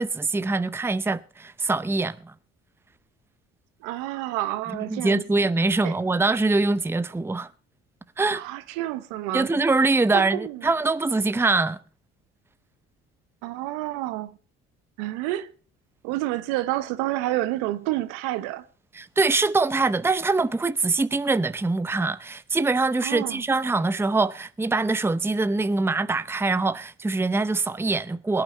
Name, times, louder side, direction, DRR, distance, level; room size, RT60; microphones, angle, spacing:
voice 1, 0.0-2.3 4.9-7.5 8.2-8.4 9.3-11.8 18.9-28.4, right 3 dB, 5° right, 0.7 m, -23 dB
voice 2, 3.8-5.5 5.8-5.9 8.3-9.5 10.1-10.7 13.4-14.4 15.0-15.5 16.0-18.6 23.0-23.4, right 15 dB, 75° right, 1.2 m, -29 dB
22.0 x 8.8 x 4.1 m
hypercardioid pair, 55°, 32 cm